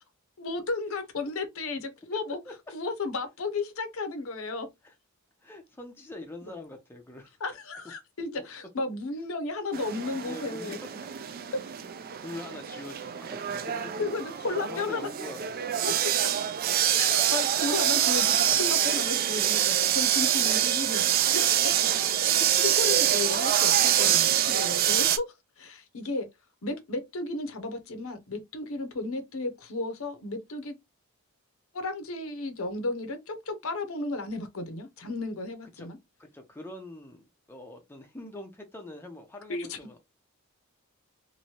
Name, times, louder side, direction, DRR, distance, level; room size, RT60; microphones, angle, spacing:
voice 1, 0.4-2.4 2.7-4.7 7.4-10.8 14.0-15.1 15.8-15.9 16.9-21.4 22.2-26.3 26.6-30.7 31.7-36.0 39.5-39.8, left 3 dB, 65° left, 0.7 m, -34 dB
voice 2, 5.4-7.4 8.4-8.5 10.2-11.1 12.1-15.4 15.9-16.0 16.8-17.1 21.9-22.0 22.4-22.5 35.8-35.9 36.2-40.0, left 1 dB, 10° left, 0.5 m, -44 dB
sound 1, 9.7-25.2, right 11 dB, 40° right, 0.3 m, -25 dB
3.0 x 2.6 x 2.8 m
head